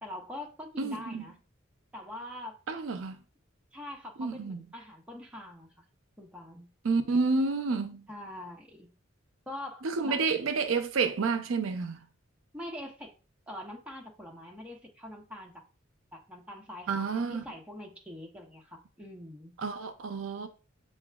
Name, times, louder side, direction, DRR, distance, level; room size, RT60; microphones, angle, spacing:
voice 1, 0.0-1.4 1.9-2.6 3.7-5.8 6.2-6.7 8.1-8.9 9.5-10.2 12.5-13.1 13.5-15.6 16.1-19.5, left 1 dB, 5° right, 0.8 m, -44 dB
voice 2, 0.8-1.3 2.7-3.2 4.2-4.6 6.8-8.0 9.8-12.0 16.9-17.4 19.6-20.5, right 4 dB, 75° right, 0.5 m, -29 dB
6.8 x 2.4 x 2.2 m
head